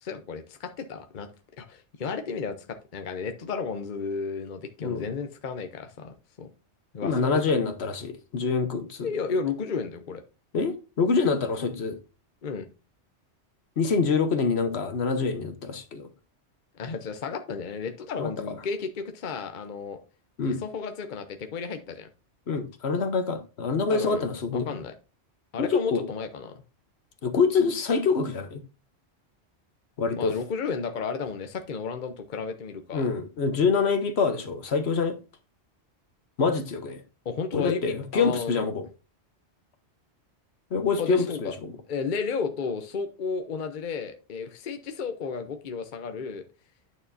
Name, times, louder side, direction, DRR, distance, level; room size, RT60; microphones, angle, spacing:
voice 1, 0.0-1.3 1.6-6.5 6.9-7.3 9.0-10.2 12.4-12.7 16.8-20.0 20.4-22.1 23.9-24.2 24.5-24.9 25.5-26.6 30.1-33.0 37.2-38.7 41.0-41.5 41.9-46.4, left 5 dB, 50° left, 0.9 m, -33 dB
voice 2, 7.0-9.1 10.5-12.0 13.8-16.1 18.2-18.3 20.4-20.6 22.5-24.8 25.6-26.1 27.2-28.6 30.0-30.4 32.9-35.2 36.4-37.0 37.5-38.9 40.7-41.7, left 5 dB, 70° left, 1.2 m, -26 dB
9.2 x 6.6 x 2.7 m
omnidirectional pair, 1.2 m